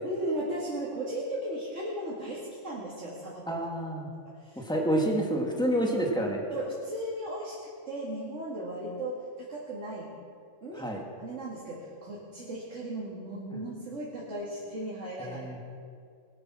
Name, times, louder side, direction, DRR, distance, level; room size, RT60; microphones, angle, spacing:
voice 1, 0.0-3.6 4.4-4.6 6.5-7.6 7.9-10.1 10.6-10.8 11.2-15.4, right 1 dB, 65° right, -5 dB, 2.8 m, -36 dB
voice 2, 3.5-4.1 4.6-6.4 10.7-11.0 13.5-13.6 15.2-15.6, right 1 dB, 5° left, -1 dB, 2.2 m, -28 dB
20.0 x 10.5 x 6.3 m, 2.3 s
omnidirectional pair, 1.4 m